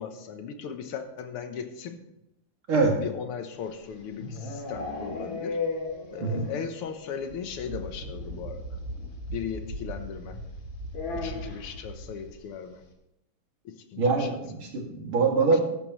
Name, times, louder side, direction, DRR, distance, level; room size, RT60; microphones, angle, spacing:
voice 1, 0.0-2.0 3.0-5.6 6.1-8.6 9.3-10.4 11.1-12.8 13.7-14.3 15.5-15.6, left 7 dB, 90° left, 7 dB, 1.9 m, -37 dB
sound 1, 3.6-6.7 7.0-7.1 7.4-7.5 7.7-7.9 9.1-9.2 10.9-11.8, left 3 dB, 65° left, 2.5 m, -34 dB
sound 2, 7.1-12.3, right 1 dB, 40° right, 2.0 m, -39 dB
voice 2, 14.0-15.6, right 4 dB, 70° right, 0 dB, 3.1 m, -24 dB
14.0 x 11.5 x 3.1 m, 0.85 s
omnidirectional pair, 2.4 m